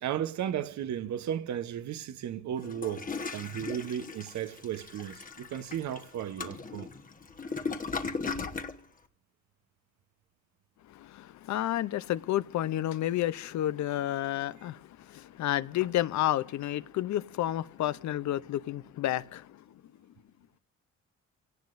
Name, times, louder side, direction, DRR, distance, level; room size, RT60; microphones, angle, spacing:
voice 1, 0.0-6.9, right 10 dB, 65° right, 1.0 m, -35 dB
Toilet flush, 2.6-8.8, left 4 dB, 25° left, 1.1 m, -37 dB
voice 2, 10.9-19.6, left 13 dB, 70° left, 0.6 m, -31 dB
28.0 x 17.5 x 2.6 m
cardioid pair, 90°, 30 cm